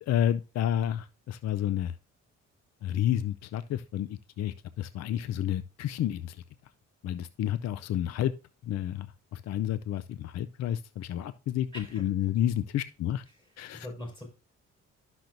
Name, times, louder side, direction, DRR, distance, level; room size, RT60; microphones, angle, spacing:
voice 1, 0.0-1.9 2.8-6.4 7.0-8.3 8.6-13.2 13.6-13.9, left 11 dB, 60° left, 0.5 m, -30 dB
voice 2, 11.7-12.3 13.3-14.2, left 1 dB, 15° left, 4.7 m, -43 dB
11.5 x 6.1 x 2.6 m
cardioid pair, 90°, 30 cm